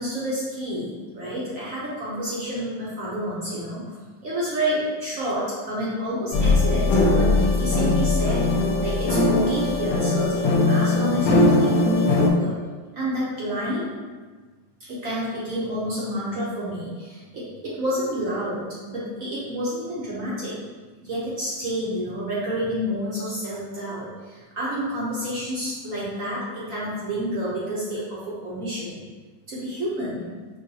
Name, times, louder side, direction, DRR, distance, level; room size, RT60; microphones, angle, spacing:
voice 1, 0.0-3.9 4.2-8.4 8.8-12.5 12.9-13.9 14.8-20.5 21.0-29.0 29.5-30.3, equal, 55° right, -8 dB, 0.9 m, -29 dB
sound 1, 6.3-12.3, left 2 dB, 80° left, 1.3 m, -20 dB
5.2 x 2.4 x 2.7 m, 1.3 s
omnidirectional pair, 2.2 m